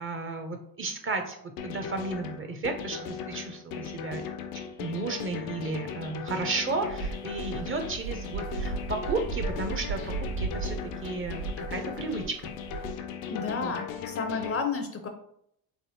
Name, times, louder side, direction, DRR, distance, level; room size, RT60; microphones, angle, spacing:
voice 1, 0.0-4.2 4.8-10.0 10.4-12.6 13.5-13.7, right 3 dB, 30° right, 5 dB, 0.5 m, -33 dB
sound 1, 1.6-14.5, left 7 dB, 80° left, 0.6 m, -38 dB
sound 2, 6.9-12.9, right 4 dB, 65° right, 1.5 m, -36 dB
voice 2, 13.3-15.1, left 5 dB, 30° left, 6 dB, 0.4 m, -31 dB
3.4 x 2.0 x 2.8 m, 0.71 s
supercardioid pair, 65°, 47 cm